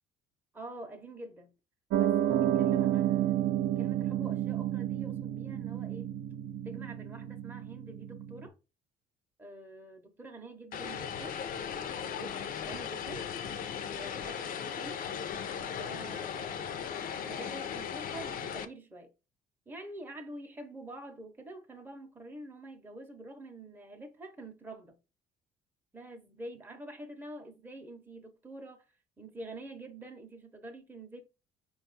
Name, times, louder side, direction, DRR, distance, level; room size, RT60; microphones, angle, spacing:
voice 1, 0.5-1.5 1.9-3.5 3.8-6.1 6.6-8.5 9.4-13.3 13.8-15.1 15.7-16.8 17.1-19.1 19.7-25.0 25.9-28.8 29.2-31.2, right 2 dB, 10° right, 0.7 m, -47 dB
Piano, 1.9-8.5, right 11 dB, 70° right, 0.5 m, -30 dB
Vehicle, 10.7-18.7, left 8 dB, 55° left, 0.5 m, -37 dB
4.6 x 2.3 x 3.9 m
cardioid pair, 110°, 17 cm